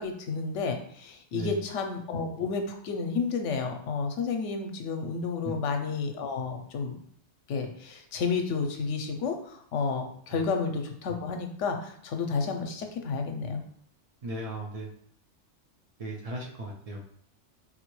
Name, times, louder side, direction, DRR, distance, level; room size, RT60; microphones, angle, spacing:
voice 1, 0.0-7.0 7.5-13.6, left 4 dB, 80° left, 5 dB, 0.9 m, -31 dB
voice 2, 14.2-14.9 16.0-17.0, right 1 dB, 60° right, -2 dB, 0.4 m, -36 dB
3.9 x 2.1 x 3.0 m, 0.64 s
omnidirectional pair, 1.2 m